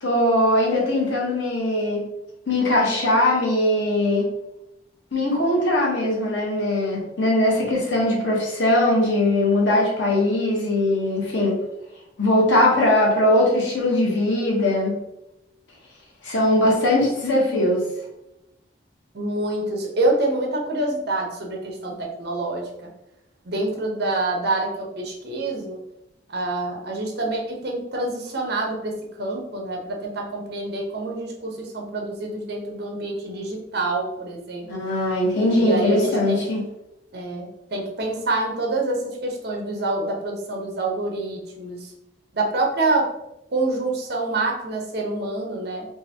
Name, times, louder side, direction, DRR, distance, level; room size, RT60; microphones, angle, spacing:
voice 1, 0.0-2.1 2.5-4.3 5.1-11.6 12.2-15.0 16.2-17.9 34.7-36.6, left 1 dB, 90° left, -3 dB, 1.2 m, -20 dB
voice 2, 19.1-22.9 23.4-25.8 26.3-34.7 35.6-36.4 37.1-41.8 42.3-43.1 43.5-45.9, right 2 dB, 60° right, 0 dB, 0.8 m, -26 dB
3.8 x 2.5 x 2.8 m, 0.88 s
head